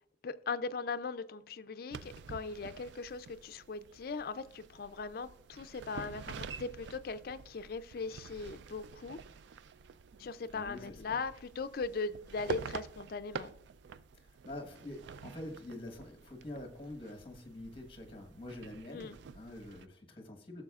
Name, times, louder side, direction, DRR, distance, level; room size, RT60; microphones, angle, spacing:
voice 1, 0.2-9.2 10.2-13.5 18.9-19.2, left 4 dB, 55° left, 12 dB, 0.4 m, -39 dB
sound 1, 1.9-19.9, right 5 dB, 80° right, 0.3 m, -48 dB
voice 2, 10.5-11.2 14.2-20.6, left 1 dB, 30° left, 5 dB, 1.2 m, -46 dB
14.0 x 6.6 x 2.4 m, 0.75 s
head